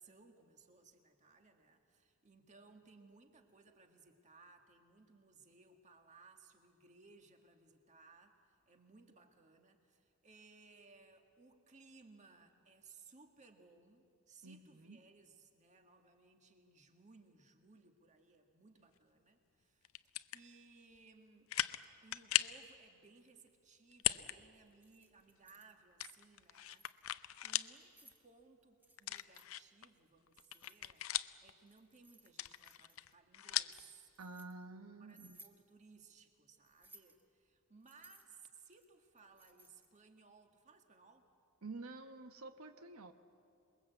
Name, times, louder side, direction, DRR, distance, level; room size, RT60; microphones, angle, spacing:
voice 1, 0.0-21.5 22.0-27.1 27.4-34.1 35.0-41.3, right 4 dB, 35° right, 4 dB, 1.9 m, -63 dB
voice 2, 14.4-15.0 34.2-35.4 41.6-43.1, right 3 dB, 90° right, 7 dB, 1.1 m, -50 dB
sound 1, 19.8-20.4 21.0-21.1 21.5-21.8 22.1-22.6 23.9-24.4 24.7-24.8 26.0-27.7 28.1-28.2 29.0-29.9 30.3-31.5 32.3-33.8, left 13 dB, 70° left, 0.6 m, -38 dB
Keys jangling, 24.7-25.7 26.5-27.0 27.7-28.2 28.8-29.5 30.3-31.2 31.7-33.1 33.8-34.5 35.1-35.6 36.7-37.2 37.8-40.0, right 2 dB, 10° right, 1.4 m, -63 dB
27.5 x 21.5 x 8.2 m, 2.5 s
head